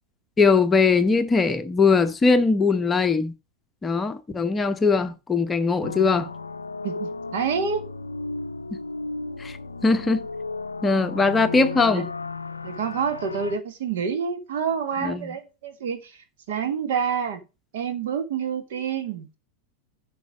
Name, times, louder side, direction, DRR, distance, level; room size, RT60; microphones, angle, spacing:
voice 1, 0.4-3.3 3.8-6.3 9.4-9.6 9.8-10.3 10.8-12.1 15.0-15.3, left 4 dB, 15° left, 0.9 m, -20 dB
sound 1, 5.8-13.6, left 3 dB, 75° left, 0.5 m, -34 dB
voice 2, 6.8-7.9 11.8-12.0 12.6-16.2 16.5-17.4 17.7-19.4, right 6 dB, 55° right, 1.7 m, -28 dB
10.5 x 5.4 x 5.1 m
figure-of-eight pair, 90°, 0 cm